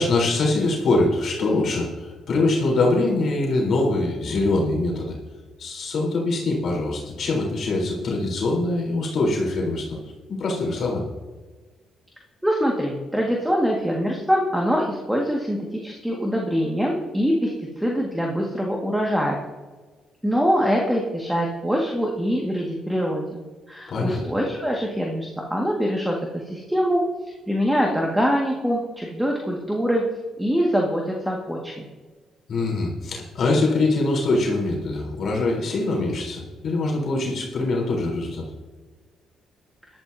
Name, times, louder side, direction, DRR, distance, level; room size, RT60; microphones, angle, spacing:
voice 1, 0.0-5.2 5.6-10.0 10.3-11.0 23.9-24.2 32.5-38.5, left 2 dB, 60° left, -2 dB, 3.8 m, -23 dB
voice 2, 12.4-17.5 17.8-19.4 20.2-23.4 23.7-27.0 27.5-30.0 30.4-31.9, equal, 5° right, -1 dB, 1.8 m, -24 dB
17.5 x 12.5 x 2.7 m, 1.3 s
cardioid pair, 90°, 0 cm